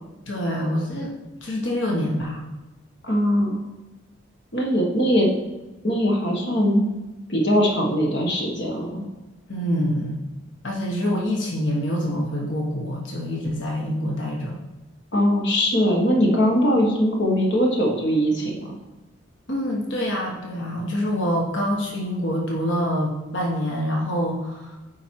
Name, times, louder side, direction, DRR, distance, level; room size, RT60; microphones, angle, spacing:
voice 1, 0.3-1.1 1.4-2.5 9.5-10.2 10.6-14.6 19.5-24.8, equal, 75° left, -2 dB, 1.4 m, -26 dB
voice 2, 3.0-3.6 4.5-5.4 5.8-6.9 7.3-9.0 15.1-18.8, equal, 60° left, -1 dB, 1.5 m, -21 dB
9.1 x 4.5 x 4.7 m, 1.1 s
head